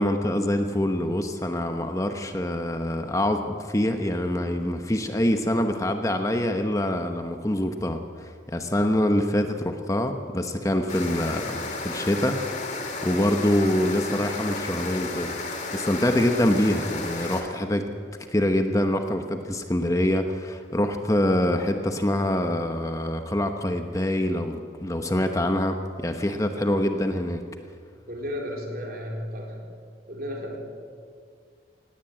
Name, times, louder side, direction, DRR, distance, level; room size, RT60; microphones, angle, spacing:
voice 1, 0.0-15.3 15.7-17.9 18.3-27.4, left 1 dB, 15° left, 5 dB, 0.9 m, -25 dB
sound 1, 10.9-17.4, left 3 dB, 40° left, 2.8 m, -33 dB
voice 2, 26.4-26.7 28.1-29.6 30.1-30.6, equal, 50° right, 0 dB, 4.1 m, -34 dB
18.0 x 17.0 x 8.8 m, 2.1 s
head